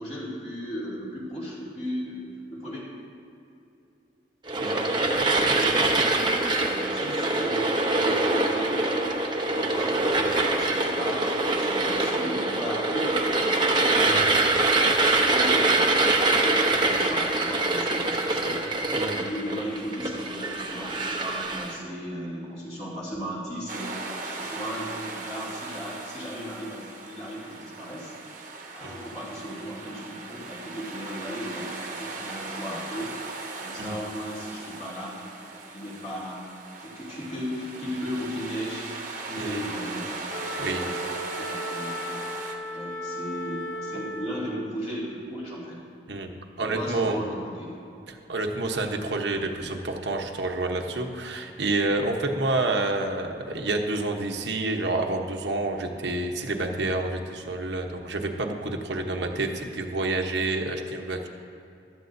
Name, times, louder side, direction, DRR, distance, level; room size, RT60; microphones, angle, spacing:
voice 1, 0.0-2.8 4.6-7.7 7.9-9.0 9.4-14.1 14.7-15.8 16.6-18.8 19.1-24.0 24.3-28.1 28.7-33.1 33.6-36.5 36.8-38.9 39.3-40.1 40.5-41.1 41.4-42.2 42.7-45.8 46.6-47.7 49.5-49.7, equal, 35° left, -6 dB, 2.7 m, -36 dB
sound 1, 4.5-21.8, right 2 dB, 25° right, 0.8 m, -24 dB
sound 2, 23.7-42.5, right 3 dB, 45° right, 1.0 m, -38 dB
Wind instrument woodwind instrument, 40.3-44.7, equal, 85° left, 1.0 m, -35 dB
voice 2, 46.6-47.2 48.1-61.3, right 2 dB, 75° right, 3 dB, 1.0 m, -28 dB
15.5 x 12.5 x 2.7 m, 2.7 s
head